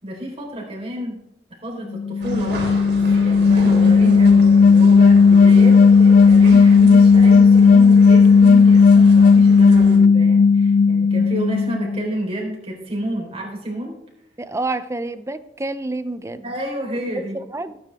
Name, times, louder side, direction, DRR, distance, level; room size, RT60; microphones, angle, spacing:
voice 1, 0.0-1.2 1.6-2.8 3.2-14.0 16.4-17.4, equal, 35° right, -1 dB, 4.1 m, -30 dB
sound 1, 1.9-12.0, left 5 dB, 50° left, 0.3 m, -12 dB
sound 2, 2.2-10.0, right 1 dB, 70° right, 3.5 m, -35 dB
voice 2, 14.4-16.5 17.1-17.8, right 2 dB, 15° right, 13 dB, 0.6 m, -28 dB
17.0 x 9.7 x 3.5 m, 0.80 s
head